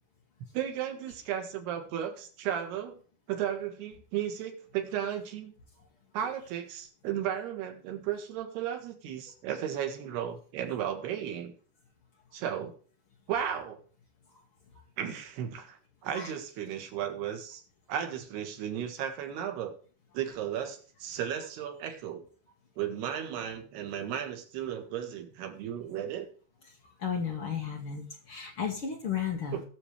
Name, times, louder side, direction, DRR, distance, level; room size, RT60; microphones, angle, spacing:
voice 1, 0.5-3.0 3.3-5.5 6.1-11.5 12.3-12.7 13.3-13.8 15.0-17.6 17.9-19.8 20.1-22.3 22.8-26.3 29.5-29.6, right 9 dB, 70° right, 5 dB, 3.7 m, -34 dB
voice 2, 27.0-29.6, left 7 dB, 80° left, 0 dB, 1.2 m, -34 dB
20.5 x 7.1 x 3.3 m, 0.43 s
omnidirectional pair, 5.0 m